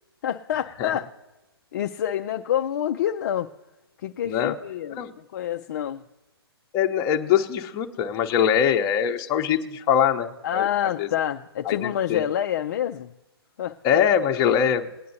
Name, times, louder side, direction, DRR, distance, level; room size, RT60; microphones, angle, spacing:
voice 1, 0.2-1.1 1.7-3.5 4.0-6.0 10.4-13.1 13.6-14.1, left 10 dB, 45° left, 0.4 m, -27 dB
voice 2, 4.2-4.6 4.9-5.1 6.7-10.7 11.0-11.1 11.7-12.2 13.8-14.9, left 8 dB, 25° left, 0.8 m, -23 dB
20.0 x 9.3 x 2.7 m
figure-of-eight pair, 130°, 13 cm